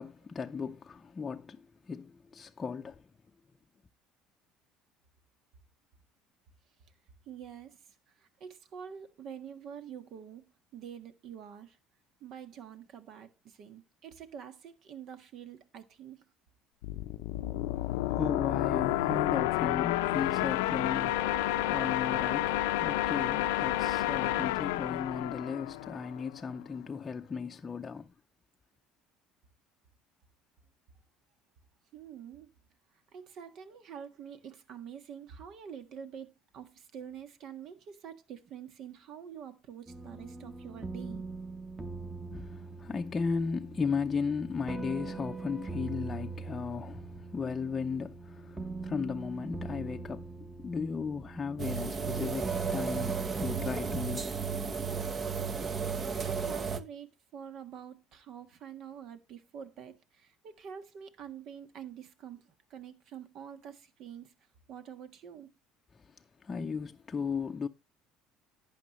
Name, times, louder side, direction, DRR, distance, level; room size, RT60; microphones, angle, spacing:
voice 1, 0.0-3.1 18.0-28.1 42.3-54.4 65.9-67.7, left 5 dB, 25° left, 0.6 m, -36 dB
voice 2, 7.3-7.8 8.2-10.4 10.7-11.8 12.2-16.2 31.9-32.5 33.1-41.2 56.2-64.3 64.7-65.5, right 8 dB, 60° right, 1.5 m, -46 dB
sound 1, 16.8-26.4, left 15 dB, 85° left, 0.6 m, -30 dB
sound 2, 39.9-55.3, right 4 dB, 15° right, 1.2 m, -42 dB
sound 3, 51.6-56.8, right 6 dB, 35° right, 1.0 m, -33 dB
11.5 x 8.7 x 3.1 m
supercardioid pair, 85°, 0 cm